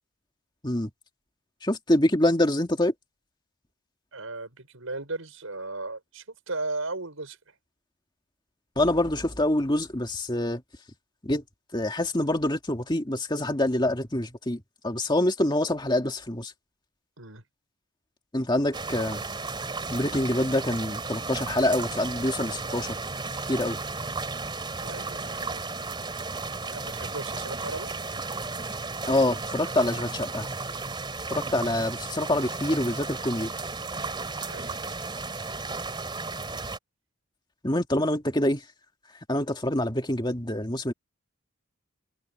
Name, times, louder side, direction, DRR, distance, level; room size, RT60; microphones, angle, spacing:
voice 1, 1.6-2.9 8.8-10.6 11.2-11.4 11.7-16.5 18.3-19.2 19.9-23.0 23.5-23.8 29.1-30.5 31.3-33.5 37.6-38.6 39.3-40.9, left 1 dB, 20° left, 2.1 m, -26 dB
voice 2, 4.1-7.4 17.2-17.4 24.8-25.6 26.7-28.0 31.5-31.7 34.5-35.0, right 2 dB, 80° right, 5.7 m, -36 dB
sound 1, 18.7-36.8, right 3 dB, 25° right, 2.9 m, -34 dB
head